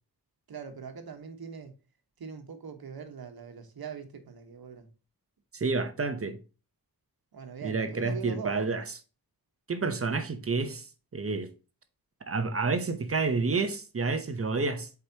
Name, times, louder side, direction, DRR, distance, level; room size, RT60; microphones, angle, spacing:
voice 1, 0.5-1.7 2.2-4.9 7.3-8.7, right 6 dB, 70° right, 1.3 m, -42 dB
voice 2, 5.5-6.4 7.6-8.8 9.7-10.9 11.1-11.5 12.3-14.9, right 4 dB, 35° right, 0.8 m, -29 dB
8.1 x 4.8 x 2.8 m
wide cardioid pair, 180°, 38 cm